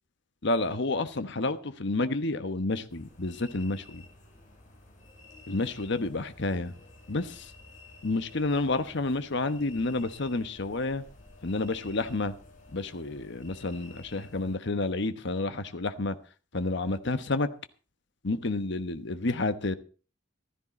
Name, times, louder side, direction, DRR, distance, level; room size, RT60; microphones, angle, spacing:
voice 1, 0.4-4.0 5.5-6.7 7.1-7.5 8.0-11.0 11.4-12.3 12.7-16.2 16.5-17.5 18.2-19.7, left 2 dB, 60° left, 1.1 m, -30 dB
sound 1, 2.9-14.6, left 2 dB, 40° left, 4.9 m, -52 dB
15.0 x 13.0 x 4.3 m
head